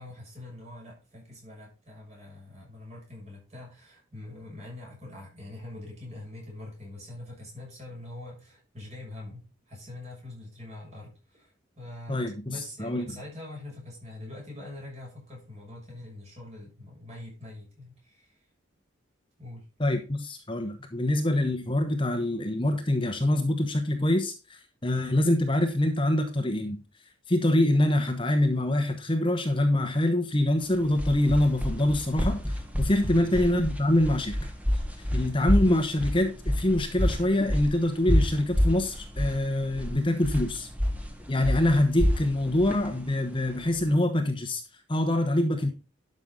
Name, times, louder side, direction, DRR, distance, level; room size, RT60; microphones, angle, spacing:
voice 1, 0.0-18.4 19.4-19.7 33.1-33.5, left 1 dB, 35° right, -2 dB, 6.5 m, -44 dB
voice 2, 12.1-13.1 19.8-26.8 27.3-34.4 35.1-40.7 41.3-44.6 44.9-45.7, left 1 dB, 25° left, 5 dB, 1.1 m, -25 dB
sound 1, 30.6-43.9, equal, 5° right, 1.5 m, -28 dB
11.5 x 6.5 x 3.8 m, 0.31 s
head